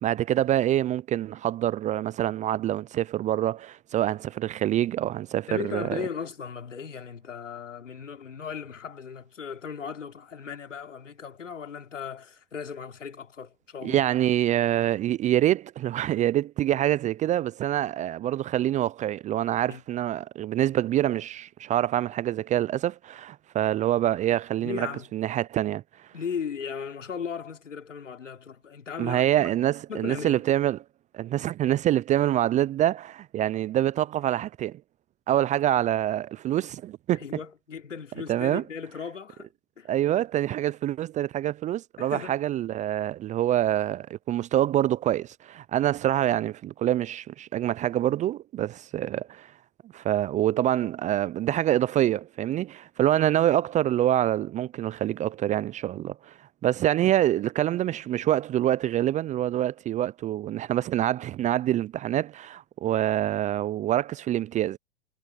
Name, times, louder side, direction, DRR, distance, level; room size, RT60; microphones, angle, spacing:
voice 1, 0.0-6.0 13.8-25.8 29.0-30.8 31.1-34.8 35.3-37.2 38.3-38.6 39.9-49.5 49.9-56.3 56.6-64.8, right 12 dB, 20° right, 0.4 m, -26 dB
voice 2, 5.5-14.0 19.7-19.8 24.6-25.1 26.1-29.5 29.9-30.4 37.2-39.5 39.8-39.9 42.0-42.4, left 6 dB, 85° left, 3.4 m, -37 dB
hypercardioid pair, 100°, 36 cm